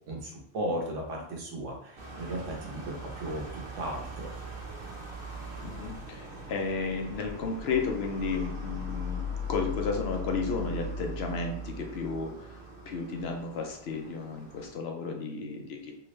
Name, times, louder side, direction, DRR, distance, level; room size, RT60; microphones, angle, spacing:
voice 1, 0.1-4.3, right 1 dB, 85° right, 0 dB, 1.3 m, -36 dB
sound 1, 2.0-14.7, left 1 dB, 60° right, 1.1 m, -39 dB
voice 2, 5.6-12.3 12.9-15.9, left 4 dB, 65° left, 2 dB, 0.8 m, -33 dB
3.4 x 2.9 x 3.1 m, 0.68 s
omnidirectional pair, 1.2 m